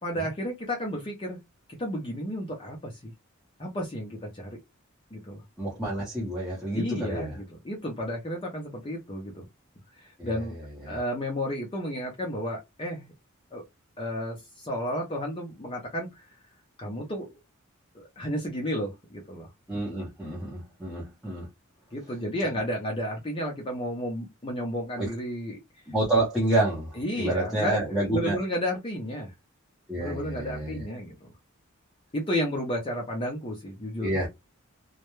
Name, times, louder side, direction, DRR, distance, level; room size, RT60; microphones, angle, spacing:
voice 1, 0.0-1.4 1.8-3.1 3.6-4.6 5.1-5.4 6.7-9.4 10.0-10.5 10.9-13.1 13.5-13.6 14.0-16.3 16.8-17.3 17.9-19.5 21.9-25.6 27.0-29.3 30.0-31.3 32.1-34.1, equal, 25° left, 0.5 m, -32 dB
voice 2, 5.6-7.4 10.2-11.0 19.7-21.5 25.0-25.1 25.9-28.4 29.9-30.8 34.0-34.3, right 1 dB, 5° right, 0.7 m, -29 dB
2.2 x 2.1 x 3.0 m
head